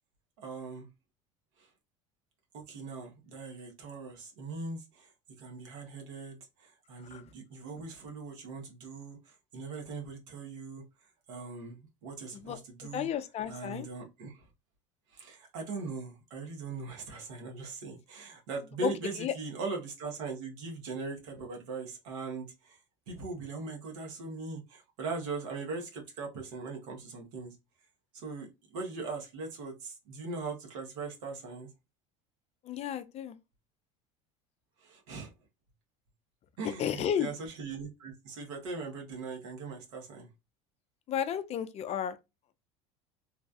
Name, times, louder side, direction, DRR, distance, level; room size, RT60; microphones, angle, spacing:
voice 1, 0.4-0.9 1.6-1.7 2.5-5.1 5.4-10.8 11.3-13.1 13.5-14.4 15.1-22.8 23.1-27.6 28.1-31.7 34.8-35.3 36.6-40.3, right 4 dB, 75° right, 1.1 m, -40 dB
voice 2, 12.3-13.9 18.8-18.9 19.2-19.3 32.6-33.4 36.8-37.3 41.1-42.2, left 9 dB, 40° left, 0.4 m, -33 dB
3.1 x 2.3 x 2.5 m
hypercardioid pair, 80°, 17 cm